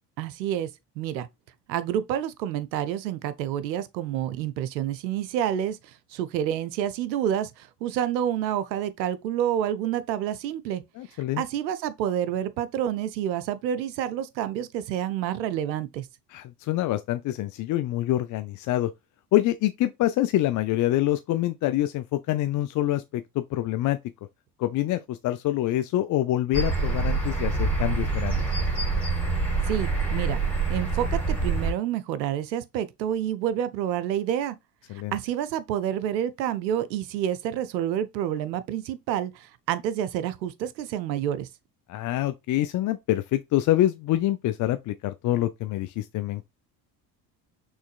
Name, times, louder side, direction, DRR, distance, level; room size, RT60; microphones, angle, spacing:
voice 1, 0.2-0.7 1.0-1.3 1.7-10.8 11.4-16.1 29.7-30.4 30.7-34.6 35.1-41.5, right 10 dB, 85° right, 0.7 m, -28 dB
voice 2, 11.0-11.4 16.3-18.9 19.3-24.0 24.6-28.4 34.9-35.1 41.9-46.5, left 14 dB, 40° left, 0.5 m, -26 dB
sound 1, 26.5-31.7, right 4 dB, 5° left, 2.5 m, -26 dB
6.3 x 3.2 x 2.4 m
hypercardioid pair, 60°, 50 cm